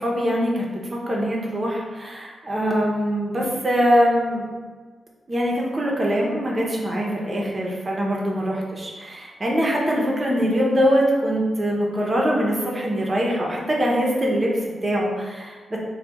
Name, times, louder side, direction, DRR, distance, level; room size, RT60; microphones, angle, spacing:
voice 1, 0.0-4.5 5.3-15.8, equal, 40° right, -2 dB, 0.8 m, -23 dB
2.8 x 2.3 x 3.5 m, 1.4 s
supercardioid pair, 45°, 0 cm